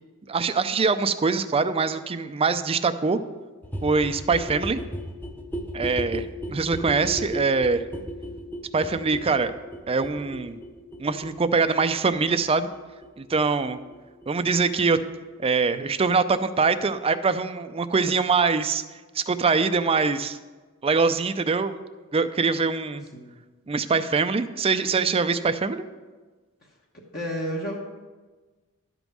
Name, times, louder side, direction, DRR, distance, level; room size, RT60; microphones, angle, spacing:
voice 1, 0.3-3.2 3.8-4.8 5.7-7.8 8.7-9.5 9.9-10.6 11.0-12.7 13.2-13.8 14.3-15.0 15.4-18.8 19.1-20.4 20.8-21.8 22.1-23.1 23.7-25.8, right 4 dB, 25° right, 11 dB, 0.4 m, -23 dB
sound 1, 3.6-15.2 15.4-15.5 15.7-15.8 16.0-16.1 16.3-16.4 16.6-16.7 16.9-17.0, equal, 10° left, 0.7 m, -36 dB
voice 2, 26.6-27.8, equal, 45° left, -3 dB, 1.1 m, -32 dB
12.0 x 5.3 x 6.1 m, 1.3 s
head